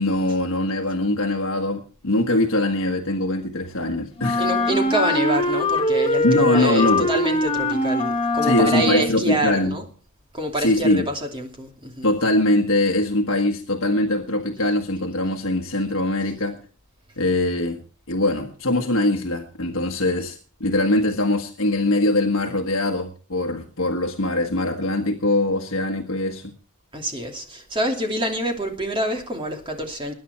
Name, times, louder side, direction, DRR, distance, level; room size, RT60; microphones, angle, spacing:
voice 1, 0.0-4.5 6.2-7.1 8.4-9.8 10.6-11.1 12.0-16.6 17.2-17.8 18.1-26.5, left 1 dB, 65° left, 1.5 m, -22 dB
Wind instrument woodwind instrument, 4.2-9.2, left 1 dB, 25° left, 1.4 m, -22 dB
voice 2, 4.4-9.9 10.3-12.1 26.9-30.1, right 1 dB, 25° right, 2.9 m, -26 dB
21.0 x 10.0 x 4.5 m
head